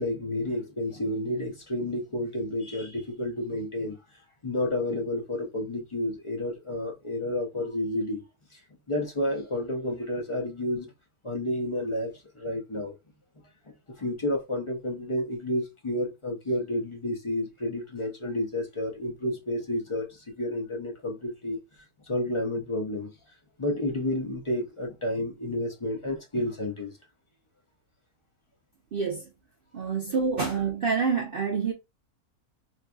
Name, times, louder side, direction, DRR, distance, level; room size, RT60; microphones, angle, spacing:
voice 1, 0.0-4.0 4.4-8.3 8.5-8.6 8.9-10.9 11.2-12.9 14.0-21.6 22.0-23.1 23.6-26.9, left 1 dB, 45° left, 0.4 m, -30 dB
voice 2, 28.9-29.3 29.7-31.7, right 5 dB, 70° right, 0.5 m, -27 dB
4.4 x 2.5 x 2.2 m
omnidirectional pair, 1.5 m